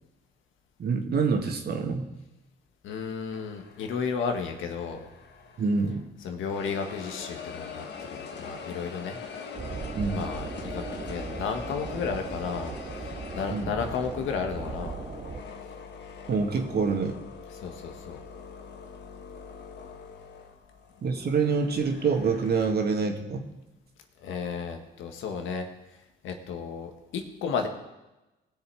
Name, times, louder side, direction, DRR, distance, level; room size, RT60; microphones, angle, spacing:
voice 1, 0.8-2.1 5.6-6.0 10.0-10.2 13.5-13.7 16.3-17.1 21.0-23.5, right 4 dB, 55° right, 4 dB, 1.9 m, -26 dB
voice 2, 2.8-5.1 6.2-9.2 10.1-15.0 17.5-18.2 24.2-25.7 26.2-27.7, left 6 dB, 85° left, 5 dB, 1.6 m, -33 dB
sound 1, 3.3-6.1 6.5-22.7, left 5 dB, 60° left, 1.6 m, -43 dB
sound 2, 9.5-15.4, right 5 dB, 30° right, 0.6 m, -38 dB
19.5 x 6.8 x 4.7 m, 1.0 s
cardioid pair, 90°, 20 cm